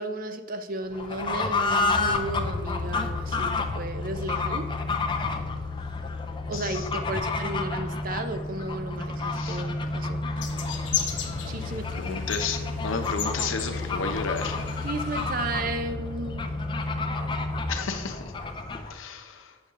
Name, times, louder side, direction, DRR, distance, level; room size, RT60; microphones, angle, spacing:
voice 1, 0.0-4.7 6.5-10.2 11.5-12.2 14.8-16.4, right 2 dB, 45° right, 8 dB, 0.5 m, -34 dB
Fowl / Bird, 0.9-19.0, left 3 dB, 25° left, 0.5 m, -32 dB
sound 1, 1.8-17.6, left 2 dB, 90° right, 2.1 m, -34 dB
sound 2, 10.4-15.6, left 6 dB, 65° left, 1.0 m, -35 dB
voice 2, 11.9-14.6 17.7-18.2 18.9-19.4, left 4 dB, 85° left, 6 dB, 0.8 m, -32 dB
7.9 x 6.5 x 3.7 m, 1.4 s
head